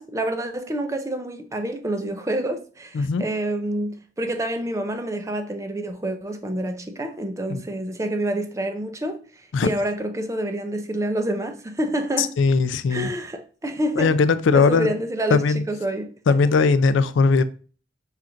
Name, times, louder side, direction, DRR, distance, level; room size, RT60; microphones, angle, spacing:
voice 1, 0.0-12.4 12.9-14.2 14.5-16.1, right 1 dB, 15° right, 0.4 m, -28 dB
voice 2, 2.9-3.3 7.5-7.6 9.5-9.7 12.2-13.1 14.0-14.9 15.3-15.6 16.3-17.4, left 4 dB, 75° left, 0.4 m, -19 dB
5.7 x 2.4 x 3.7 m
head